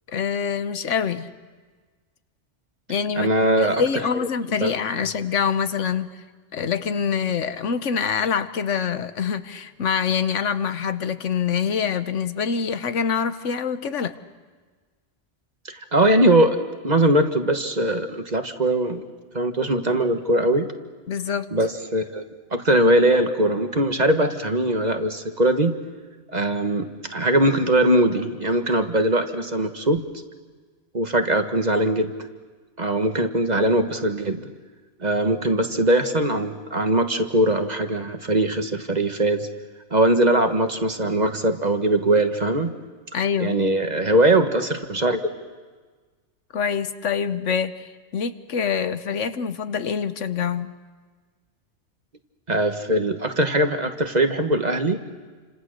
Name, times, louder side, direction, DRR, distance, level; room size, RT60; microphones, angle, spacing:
voice 1, 0.1-1.3 2.9-3.3 3.6-6.1 6.5-14.2 21.1-21.5 43.1-43.6 46.5-50.7, left 6 dB, 90° left, 11 dB, 1.4 m, -25 dB
voice 2, 3.2-3.8 4.1-4.3 4.6-4.7 15.7-16.6 16.8-19.1 19.3-20.7 21.5-22.2 22.5-25.7 26.3-30.0 30.9-32.1 32.8-34.5 35.0-39.5 39.9-42.7 43.4-45.2 52.5-55.0, right 1 dB, 35° right, 7 dB, 1.5 m, -21 dB
29.0 x 26.5 x 6.6 m, 1.4 s
omnidirectional pair, 1.2 m